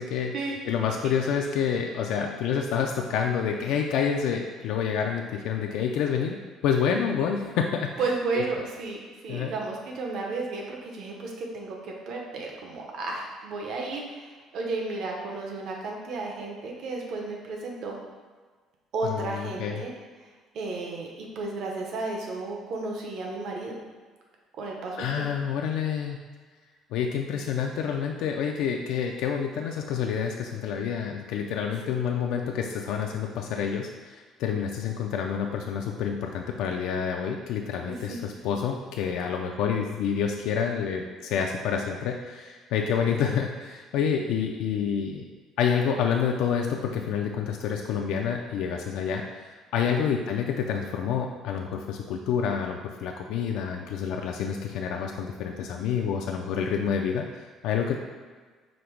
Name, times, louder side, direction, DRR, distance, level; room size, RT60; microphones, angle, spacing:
voice 1, 0.0-0.3 0.6-6.4 6.6-8.0 8.4-8.5 9.3-9.5 19.1-19.8 25.0-26.2 26.9-45.3 45.6-58.0, left 7 dB, 75° left, 2 dB, 0.3 m, -28 dB
voice 2, 8.0-18.0 18.9-19.9 20.5-23.8 24.6-25.3 31.9-32.0 37.9-38.4 43.0-43.1 50.0-50.1, right 3 dB, 60° right, -1 dB, 0.7 m, -33 dB
5.0 x 2.1 x 4.4 m, 1.5 s
cardioid pair, 145°, 0 cm